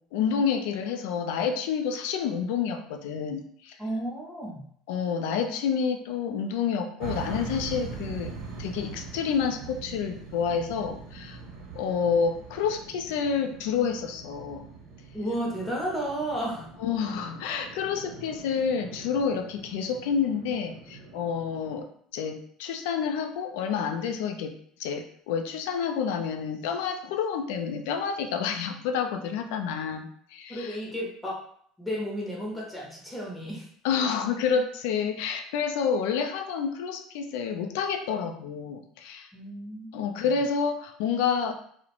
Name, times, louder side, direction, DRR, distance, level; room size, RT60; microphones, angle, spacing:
voice 1, 0.1-3.8 4.9-8.3 8.6-11.4 11.8-14.7 16.8-24.5 24.8-30.8 33.8-39.3 39.9-41.5, left 6 dB, 85° left, 6 dB, 0.3 m, -29 dB
voice 2, 3.8-4.6 15.1-16.7 30.5-31.4 31.8-33.7 39.3-40.3, equal, 5° left, -4 dB, 0.5 m, -33 dB
sound 1, 7.0-21.8, right 4 dB, 60° right, 0.7 m, -42 dB
2.4 x 2.0 x 2.8 m, 0.63 s
cardioid pair, 170°, 0 cm